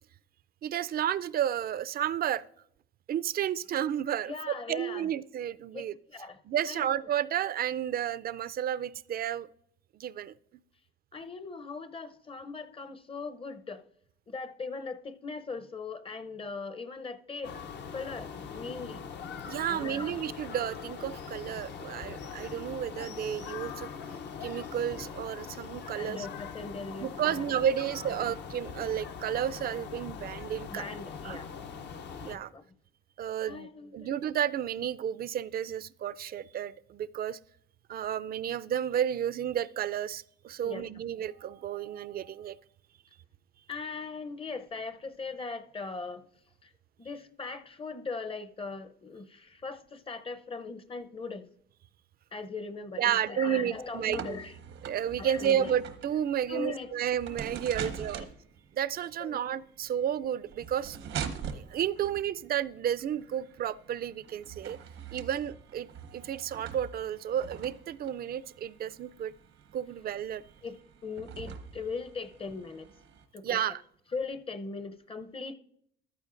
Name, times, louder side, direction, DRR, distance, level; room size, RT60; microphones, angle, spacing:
voice 1, 0.6-2.4 3.1-5.9 6.5-9.5 9.9-10.3 19.5-23.9 24.4-26.3 27.0-30.9 31.2-31.4 32.2-32.5 33.2-37.4 37.9-42.5 53.0-54.4 54.8-58.3 58.7-61.0 61.5-64.8 65.1-69.3 69.7-70.4 73.4-73.8, right 10 dB, 50° right, 0.4 m, -32 dB
voice 2, 4.3-5.1 5.7-5.8 6.1-6.4 6.7-6.9 11.1-13.8 14.3-17.5 17.9-19.0 19.7-20.1 26.0-27.6 28.2-28.3 30.7-31.5 32.3-32.6 33.5-34.1 40.6-40.9 43.7-46.3 46.6-46.7 47.0-51.5 52.3-54.5 55.2-55.7 56.5-56.9 57.8-58.0 59.2-59.4 70.6-72.9 73.3-73.5 74.1-75.5, left 4 dB, 30° left, 0.6 m, -39 dB
sound 1, 17.4-32.4, left 6 dB, 60° left, 0.7 m, -42 dB
sound 2, 53.7-73.2, right 7 dB, 85° right, 0.9 m, -44 dB
14.0 x 11.5 x 2.5 m
cardioid pair, 90°, 20 cm